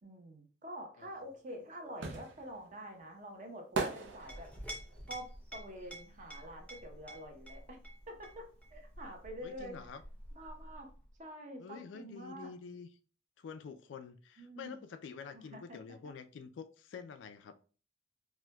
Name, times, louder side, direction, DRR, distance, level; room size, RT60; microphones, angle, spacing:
voice 1, 0.0-4.5 5.1-7.8 8.1-8.4 8.7-9.8 10.4-10.9 11.2-12.5 14.4-14.9 15.3-15.8, equal, 40° right, 0.7 m, -47 dB
sound 1, 1.1-7.0 7.3-8.9 9.1-9.2, right 3 dB, 80° right, 0.5 m, -41 dB
Chink clink, 4.0-11.1, equal, 10° left, 0.6 m, -50 dB
voice 2, 9.4-10.0 11.6-12.9 13.4-17.6, left 5 dB, 80° left, 0.3 m, -48 dB
4.3 x 2.1 x 2.2 m
head